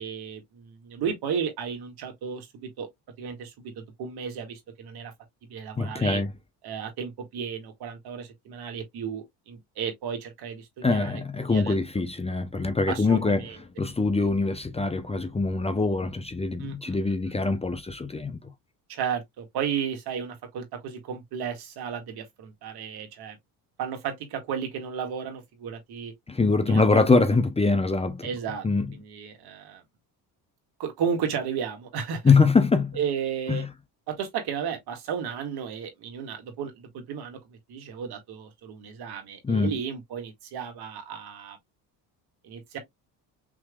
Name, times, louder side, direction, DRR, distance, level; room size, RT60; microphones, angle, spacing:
voice 1, 0.0-2.9 3.2-5.1 5.5-6.2 6.6-11.7 12.9-13.6 16.6-17.1 18.9-23.4 23.8-26.1 26.7-27.0 28.2-29.8 30.8-32.3 33.0-33.7 34.1-41.6 42.4-42.8, right 7 dB, 65° right, 2.2 m, -34 dB
voice 2, 5.8-6.3 10.8-13.4 13.8-18.4 26.3-28.3 28.6-28.9 32.2-33.0 33.5-33.7 39.4-39.7, left 3 dB, 15° left, 0.8 m, -23 dB
5.9 x 3.3 x 2.4 m
supercardioid pair, 90°, 41 cm